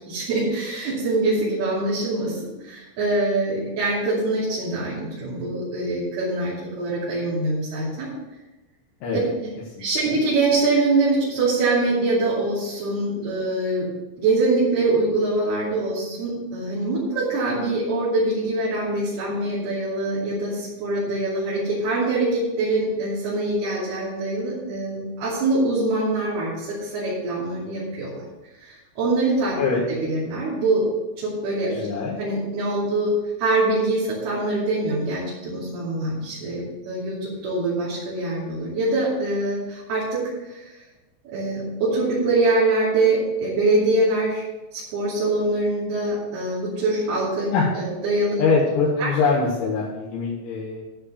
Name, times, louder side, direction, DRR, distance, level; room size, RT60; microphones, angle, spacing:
voice 1, 0.0-8.1 9.8-13.9 14.2-28.3 28.6-29.5 29.9-30.9 31.2-31.9 32.2-40.7 41.2-44.4 44.7-47.5 47.7-48.4 49.0-49.1, right 2 dB, 60° right, -9 dB, 4.6 m, -24 dB
voice 2, 9.8-10.2 29.6-29.8 31.7-32.2 47.5-47.7 48.4-50.8, left 4 dB, 90° left, -7 dB, 4.3 m, -23 dB
12.5 x 5.3 x 6.8 m, 1.1 s
omnidirectional pair, 5.2 m